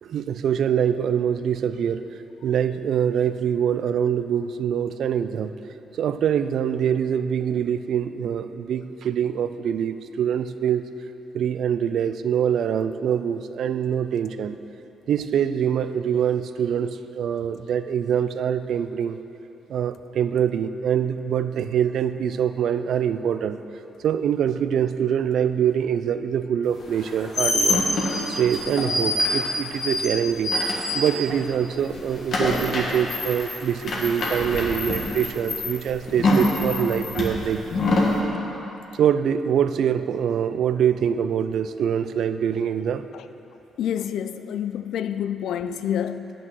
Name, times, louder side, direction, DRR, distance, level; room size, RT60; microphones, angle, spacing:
voice 1, 0.0-2.0 2.4-5.5 6.0-10.8 11.3-14.6 15.1-19.2 19.7-23.6 24.0-27.9 28.3-30.5 30.9-37.6 39.0-43.0, right 8 dB, 70° right, 0.3 m, -24 dB
sound 1, 26.9-31.5 31.8-38.2, left 1 dB, 55° left, 1.7 m, -25 dB
voice 2, 43.8-46.3, left 9 dB, 75° left, 0.4 m, -28 dB
9.0 x 6.1 x 6.2 m
cardioid pair, 90°, 0 cm